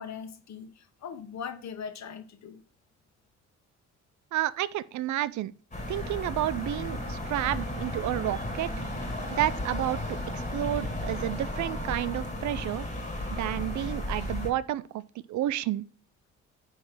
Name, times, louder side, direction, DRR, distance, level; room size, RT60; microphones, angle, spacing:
voice 1, 0.0-2.6, left 7 dB, 65° left, 1.2 m, -40 dB
voice 2, 4.3-5.5 5.9-8.7 9.3-12.8 13.3-15.0 15.3-15.8, right 13 dB, 70° right, 0.5 m, -30 dB
sound 1, 5.7-14.5, left 1 dB, 25° left, 2.1 m, -34 dB
9.7 x 3.3 x 6.0 m
cardioid pair, 90°, 30 cm